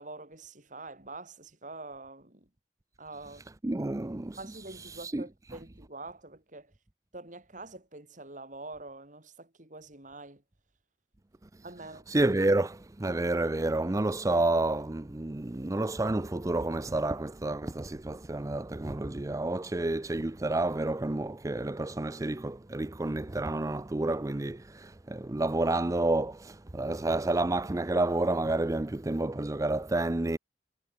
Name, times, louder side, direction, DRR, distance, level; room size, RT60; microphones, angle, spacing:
voice 1, 0.0-2.5 3.0-3.4 4.4-6.7 7.1-10.4 11.6-12.1, right 2 dB, 45° right, 5.6 m, -45 dB
voice 2, 3.6-5.6 11.5-11.6 12.1-30.4, right 2 dB, 20° right, 0.5 m, -30 dB
head